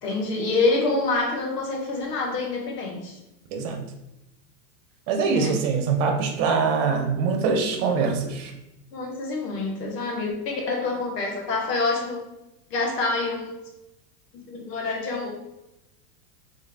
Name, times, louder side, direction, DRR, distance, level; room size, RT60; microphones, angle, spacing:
voice 1, 0.0-3.2 5.3-5.6 8.9-12.2 12.7-13.5 14.3-15.3, left 3 dB, 85° left, 0 dB, 1.4 m, -26 dB
voice 2, 5.1-8.5, right 5 dB, 50° right, 4 dB, 0.9 m, -23 dB
3.5 x 3.4 x 3.3 m, 0.91 s
supercardioid pair, 120°, 47 cm